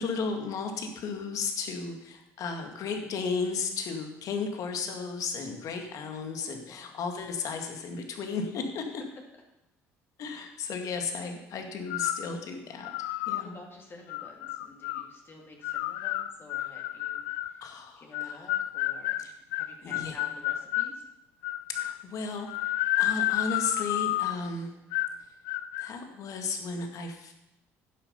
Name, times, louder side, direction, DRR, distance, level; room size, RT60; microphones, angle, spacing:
voice 1, 0.0-8.8 10.2-12.9 13.3-13.6 17.6-18.5 19.2-19.3 19.8-20.2 21.7-24.8 25.8-27.3, left 4 dB, 60° left, 4 dB, 2.0 m, -34 dB
voice 2, 6.6-7.0 13.1-17.6 18.0-21.1, left 2 dB, 35° left, 1 dB, 2.7 m, -51 dB
sound 1, 11.9-12.3 12.8-13.5 14.1-15.1 15.6-17.6 18.1-21.0 21.4-22.0 22.5-24.5 24.9-25.2 25.5-25.9, left 15 dB, 90° left, 0.4 m, -30 dB
11.0 x 7.8 x 5.6 m, 0.92 s
supercardioid pair, 80°, 6 cm